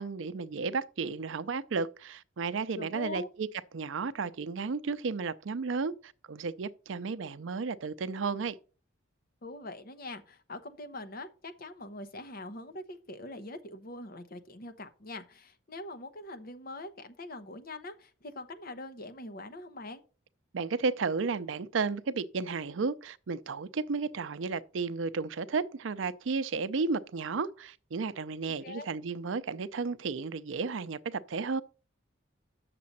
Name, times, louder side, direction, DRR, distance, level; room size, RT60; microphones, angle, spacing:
voice 1, 0.0-3.5 3.7-8.6 20.5-31.6, right 4 dB, 75° right, 0.5 m, -33 dB
voice 2, 2.8-3.3 9.4-20.0 28.6-28.9, left 2 dB, 50° left, 0.9 m, -43 dB
8.5 x 6.8 x 4.1 m
head